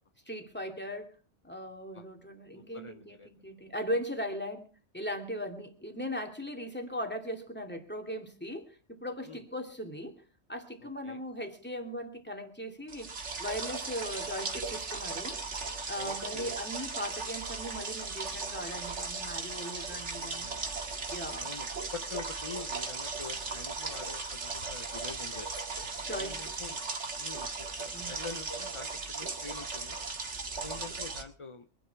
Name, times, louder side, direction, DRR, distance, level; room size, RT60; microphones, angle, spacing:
voice 1, 0.3-1.1 1.4-4.7 4.9-10.2 10.5-13.1 13.4-15.4 15.9-20.5 21.1-21.5 26.1-26.4 26.6-26.7 27.9-28.1, equal, 10° left, 4 dB, 2.5 m, -38 dB
voice 2, 2.5-3.3 9.2-9.4 10.8-11.2 15.9-16.6 19.9-20.8 21.4-25.5 26.1-26.8 27.2-30.0 30.5-31.7, left 4 dB, 30° left, 8 dB, 0.8 m, -45 dB
sound 1, 12.9-31.2, right 4 dB, 65° right, 2.1 m, -37 dB
24.0 x 10.0 x 4.7 m, 0.37 s
omnidirectional pair, 1.3 m